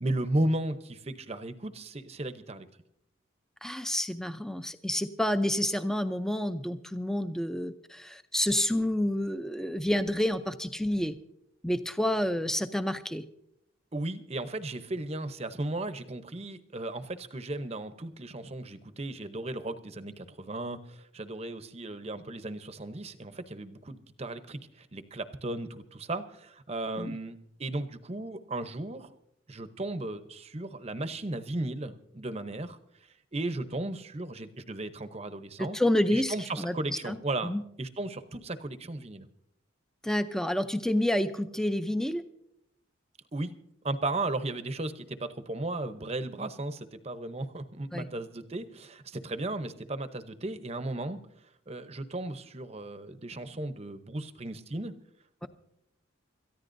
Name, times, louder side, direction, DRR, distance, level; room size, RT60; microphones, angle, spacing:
voice 1, 0.0-2.7 13.9-29.1 29.5-32.8 33.3-35.8 36.1-39.3 43.3-43.5 43.8-51.2 51.7-54.9, right 2 dB, 30° right, 10 dB, 0.8 m, -35 dB
voice 2, 3.6-11.2 11.6-13.2 27.0-27.2 35.6-37.2 37.4-37.6 40.0-42.2 47.9-48.1 55.4-55.5, left 1 dB, ahead, 9 dB, 0.5 m, -29 dB
27.5 x 14.0 x 2.6 m, 0.76 s
head